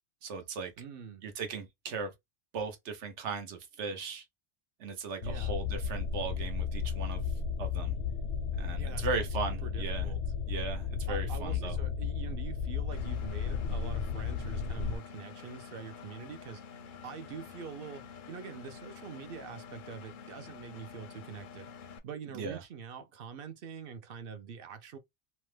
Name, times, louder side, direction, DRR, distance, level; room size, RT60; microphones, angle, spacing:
voice 1, 0.2-0.7 1.2-2.1 2.5-4.2 4.8-7.2 7.6-7.9 8.5-10.1 10.5-11.8 22.3-22.6, right 4 dB, 85° right, 1.1 m, -37 dB
voice 2, 0.8-1.2 5.2-5.5 8.8-9.3 9.6-10.2 11.1-25.0, right 6 dB, 60° right, 0.7 m, -45 dB
sound 1, 5.2-15.0, left 6 dB, 85° left, 0.9 m, -34 dB
Engine, 12.9-22.0, left 6 dB, 60° left, 0.6 m, -49 dB
2.9 x 2.1 x 3.1 m
omnidirectional pair, 1.2 m